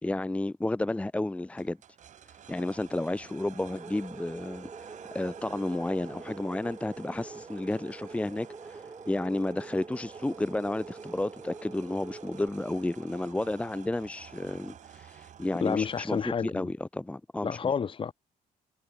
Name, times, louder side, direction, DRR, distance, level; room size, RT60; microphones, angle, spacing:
voice 1, 0.0-1.8 2.3-17.6, left 2 dB, 10° left, 0.8 m, -32 dB
sound 1, 1.6-16.4, right 9 dB, 55° right, 7.7 m, -50 dB
sound 2, 3.6-12.5, right 3 dB, 20° right, 4.7 m, -46 dB
voice 2, 15.6-16.7 17.4-18.1, left 6 dB, 35° left, 1.9 m, -30 dB
cardioid pair, 125°, 15 cm